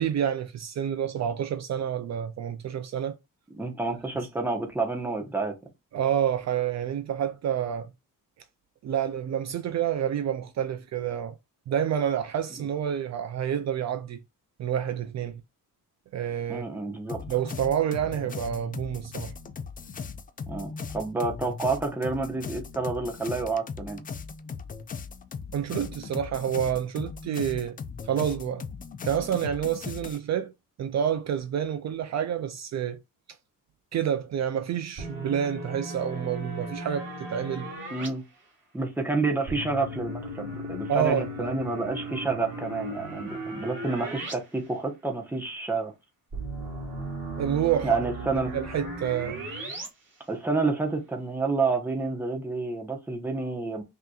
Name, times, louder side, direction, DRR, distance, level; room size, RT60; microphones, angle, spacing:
voice 1, 0.0-3.2 5.9-7.9 8.8-11.3 11.7-14.2 14.6-15.4 16.1-16.7 17.3-19.3 25.5-27.8 28.0-28.6 29.0-30.5 30.8-33.0 33.9-37.7 40.9-41.5 47.4-48.0 48.5-49.4, right 9 dB, 50° right, 0.5 m, -28 dB
voice 2, 3.5-5.5 12.5-12.7 16.5-17.2 20.5-24.0 37.9-38.2 38.7-45.9 47.8-48.5 50.3-53.8, right 3 dB, 5° right, 1.0 m, -29 dB
sound 1, 17.1-30.2, left 5 dB, 25° left, 0.3 m, -38 dB
sound 2, 35.0-38.1 39.5-44.3 44.7-44.8 46.3-49.9, right 1 dB, 35° right, 2.3 m, -36 dB
5.5 x 2.9 x 2.3 m
cardioid pair, 160°, 34 cm